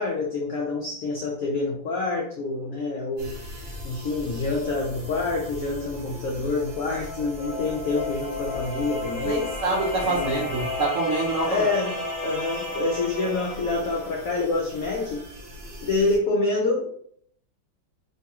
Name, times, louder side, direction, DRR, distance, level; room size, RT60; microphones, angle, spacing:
voice 1, 0.0-3.4 3.8-9.4 10.0-10.4 11.5-15.2 15.8-16.9, left 3 dB, 85° left, -1 dB, 0.7 m, -27 dB
sound 1, 3.2-16.2, left 1 dB, 60° right, 1.4 m, -41 dB
sound 2, 6.5-14.3, left 2 dB, 50° left, 1.5 m, -33 dB
voice 2, 9.2-11.7, right 2 dB, 75° right, -4 dB, 0.7 m, -26 dB
3.1 x 2.3 x 2.8 m, 0.62 s
omnidirectional pair, 2.0 m